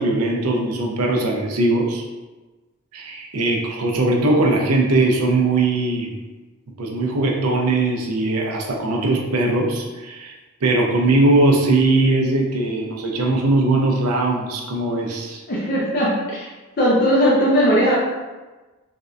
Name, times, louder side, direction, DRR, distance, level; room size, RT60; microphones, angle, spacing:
voice 1, 0.0-2.0 2.9-6.2 6.8-10.3 10.6-15.4, right 2 dB, 85° right, 0 dB, 0.5 m, -20 dB
voice 2, 15.5-16.5 16.8-18.0, equal, 45° left, -6 dB, 0.5 m, -18 dB
3.4 x 2.2 x 2.5 m, 1.2 s
head